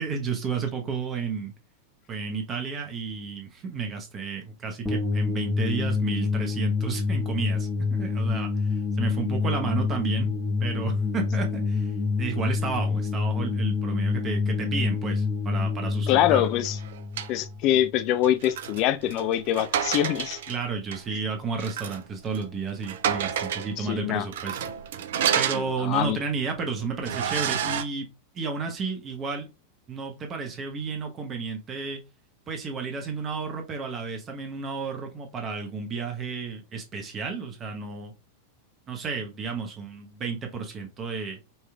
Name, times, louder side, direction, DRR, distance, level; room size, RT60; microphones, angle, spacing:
voice 1, 0.0-1.5 2.1-10.3 10.6-11.9 12.2-16.4 20.5-24.6 25.3-28.1 28.3-29.5 29.9-32.0 32.5-38.1 38.9-41.4, right 5 dB, 25° right, 0.9 m, -32 dB
sound 1, 4.8-18.0, left 4 dB, 10° left, 1.2 m, -27 dB
voice 2, 16.1-16.8 17.3-20.4 21.1-21.2 23.8-24.3 25.5-26.2, left 12 dB, 40° left, 0.4 m, -24 dB
sound 2, 16.6-17.3 18.2-20.6 20.9-21.0 21.6-22.1 22.3-22.5 22.8-23.7 24.3-26.1 26.6-26.7 27.0-27.8, right 8 dB, 55° right, 0.5 m, -29 dB
5.5 x 3.1 x 2.2 m
figure-of-eight pair, 90°, 0 cm